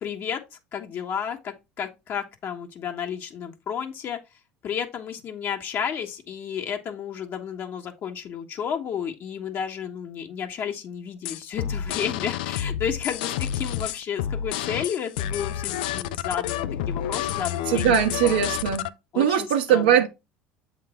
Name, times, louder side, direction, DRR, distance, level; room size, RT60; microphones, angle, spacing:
voice 1, 0.0-4.2 4.6-18.4 19.1-20.0, left 8 dB, 50° left, 1.6 m, -32 dB
sound 1, 11.3-18.9, left 10 dB, 80° left, 0.4 m, -29 dB
voice 2, 17.7-18.9 19.2-20.1, right 9 dB, 85° right, 1.2 m, -20 dB
7.7 x 3.6 x 4.4 m
hypercardioid pair, 85°, 5 cm